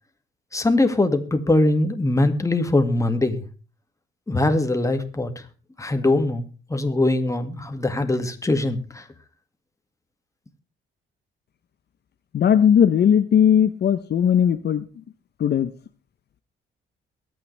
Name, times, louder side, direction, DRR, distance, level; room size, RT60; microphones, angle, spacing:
voice 1, 0.5-3.4 4.3-5.3 5.8-9.0, left 2 dB, 15° left, 7 dB, 2.1 m, -22 dB
voice 2, 12.3-14.8 15.4-15.7, left 8 dB, 55° left, 11 dB, 0.8 m, -18 dB
23.0 x 9.1 x 3.4 m, 0.35 s
cardioid pair, 90°, 20 cm